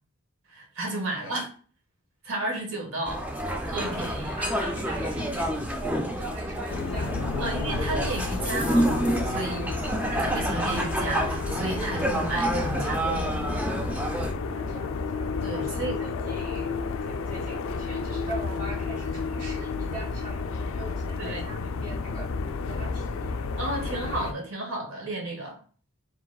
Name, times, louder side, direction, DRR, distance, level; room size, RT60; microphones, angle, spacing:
voice 1, 0.5-1.5 2.2-3.2 3.6-4.4 7.4-8.9 9.2-9.7 10.1-13.4 15.4-16.0 21.2-21.4 23.6-25.6, right 2 dB, 70° right, 1.3 m, -33 dB
voice 2, 1.1-1.5 4.3-7.6 9.3-10.2 14.3-22.3 22.7-23.4, right 2 dB, 40° right, 1.7 m, -41 dB
sound 1, 3.1-14.3, right 1 dB, 5° right, 0.3 m, -28 dB
sound 2, 6.7-24.3, left 4 dB, 70° left, 0.3 m, -32 dB
4.8 x 3.8 x 2.3 m
head